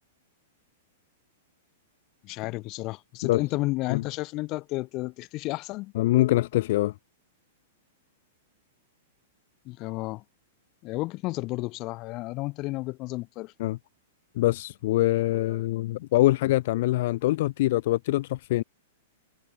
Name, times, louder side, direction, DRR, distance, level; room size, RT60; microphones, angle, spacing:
voice 1, 2.2-5.9 9.7-10.2 10.8-13.5, left 21 dB, 40° left, 2.0 m, -32 dB
voice 2, 5.9-6.9 13.6-13.8 14.4-18.6, left 17 dB, 60° left, 0.8 m, -24 dB
hypercardioid pair, 135°, 0 cm